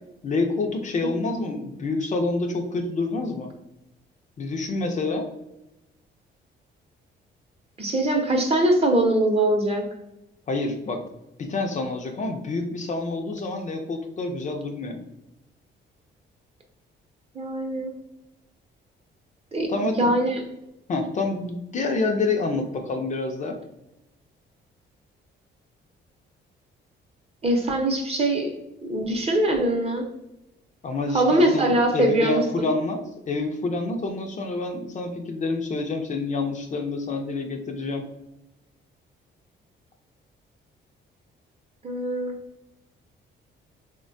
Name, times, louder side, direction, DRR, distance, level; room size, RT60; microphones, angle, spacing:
voice 1, 0.2-3.5 4.4-5.3 10.5-11.0 11.4-15.0 19.7-20.2 20.9-23.6 30.8-38.0, left 3 dB, 40° left, 3 dB, 0.4 m, -27 dB
voice 2, 7.8-9.8 17.3-17.9 19.5-20.5 27.4-28.5 28.8-30.1 31.1-32.7 41.8-42.3, right 1 dB, 30° right, 2 dB, 0.7 m, -22 dB
3.3 x 2.2 x 2.5 m, 0.91 s
cardioid pair, 90°, 20 cm